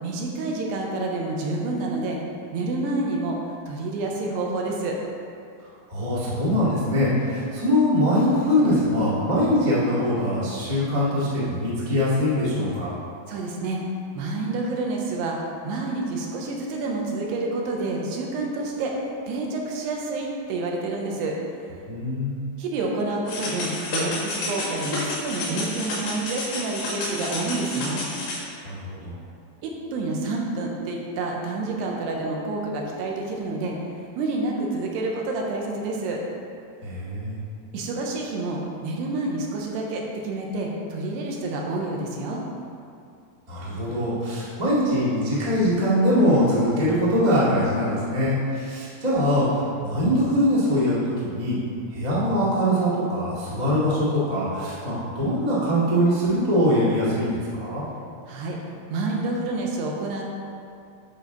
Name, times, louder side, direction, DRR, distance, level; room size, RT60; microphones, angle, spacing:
voice 1, 0.0-2.2 2.5-3.4 3.7-5.0 13.3-13.8 14.1-21.4 22.6-28.1 29.6-33.8 34.2-36.2 37.7-42.4 58.3-58.6 58.9-60.2, right 2 dB, 85° right, -1 dB, 3.0 m, -28 dB
voice 2, 5.9-13.0 21.9-22.4 28.6-29.2 36.8-37.4 43.5-51.6 51.9-57.8, equal, 25° right, -9 dB, 0.9 m, -22 dB
sound 1, 23.3-28.4, left 2 dB, 75° left, 3.9 m, -30 dB
10.0 x 6.3 x 3.9 m, 2.4 s
omnidirectional pair, 4.7 m